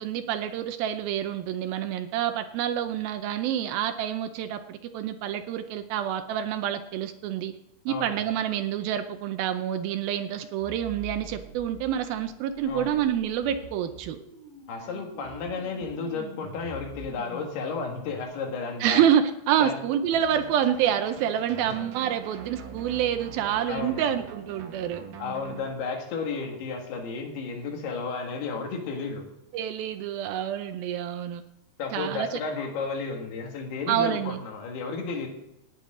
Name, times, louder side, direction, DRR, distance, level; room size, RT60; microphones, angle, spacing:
voice 1, 0.0-7.5 7.9-14.2 18.8-25.0 29.5-31.4 31.9-32.4 33.9-34.4, right 10 dB, 80° right, 9 dB, 2.3 m, -27 dB
voice 2, 7.9-8.2 12.7-13.0 14.7-19.0 19.6-19.8 21.6-21.8 23.7-24.1 25.2-29.3 31.8-35.3, left 4 dB, 75° left, 2 dB, 3.8 m, -33 dB
sound 1, 10.6-18.2, equal, 20° right, 1.5 m, -45 dB
sound 2, 20.1-25.7, right 6 dB, 60° right, 2.7 m, -43 dB
18.0 x 9.2 x 3.7 m, 0.87 s
omnidirectional pair, 4.6 m